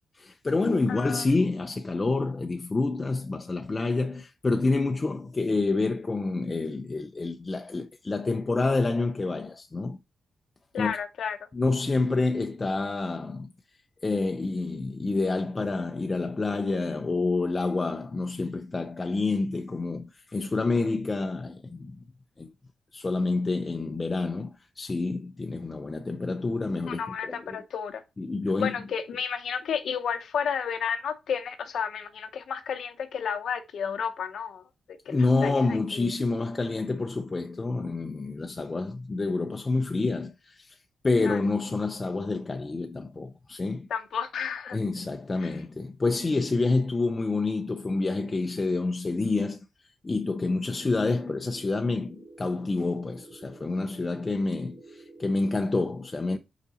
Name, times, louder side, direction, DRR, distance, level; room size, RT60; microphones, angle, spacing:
voice 1, 0.1-10.0 10.8-10.9 11.5-13.5 14.0-22.0 22.4-22.5 22.9-27.6 28.2-28.7 35.1-40.8 41.0-43.9 44.7-49.6 50.0-56.4, left 3 dB, 25° left, 0.5 m, -28 dB
voice 2, 0.9-1.3 10.7-11.4 26.9-28.0 28.6-34.6 35.1-36.1 41.2-41.4 43.9-44.8 45.4-45.6, left 7 dB, 75° left, 0.8 m, -32 dB
sound 1, 50.6-55.6, right 3 dB, 30° right, 2.5 m, -50 dB
5.6 x 5.0 x 4.1 m
wide cardioid pair, 125°, 0 cm